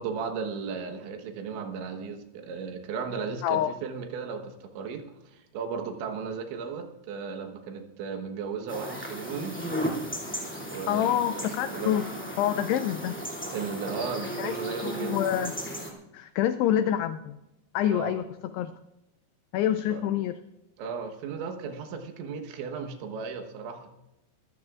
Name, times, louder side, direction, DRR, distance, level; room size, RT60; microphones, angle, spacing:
voice 1, 0.0-9.6 10.7-11.9 13.5-15.2 17.9-18.1 19.9-20.0 20.8-23.9, right 5 dB, 80° right, 6 dB, 3.6 m, -35 dB
voice 2, 3.4-3.7 10.9-12.1 12.4-13.2 14.4-14.5 14.8-15.5 16.1-17.4 17.7-18.3 18.5-18.7 19.5-20.4, left 11 dB, 85° left, 10 dB, 2.3 m, -26 dB
sound 1, 8.7-15.9, equal, 20° left, 0.3 m, -35 dB
23.5 x 15.0 x 2.5 m, 0.91 s
omnidirectional pair, 5.3 m